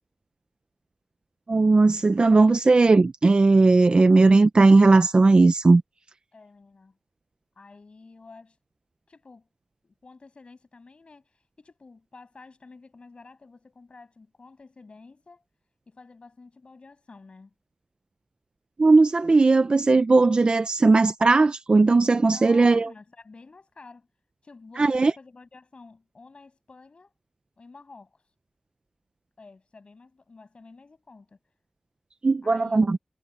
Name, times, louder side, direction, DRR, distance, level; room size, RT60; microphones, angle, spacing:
voice 1, 1.5-5.8 18.8-22.9 24.8-25.1 32.2-33.0, right 3 dB, 50° right, 0.7 m, -17 dB
voice 2, 6.3-7.0 7.5-8.6 9.1-9.5 9.8-15.4 15.9-17.5 22.3-24.1 24.4-27.1 27.6-28.2 29.4-31.4 32.4-32.9, left 3 dB, 60° left, 6.8 m, -50 dB
wide cardioid pair, 90°, 2 cm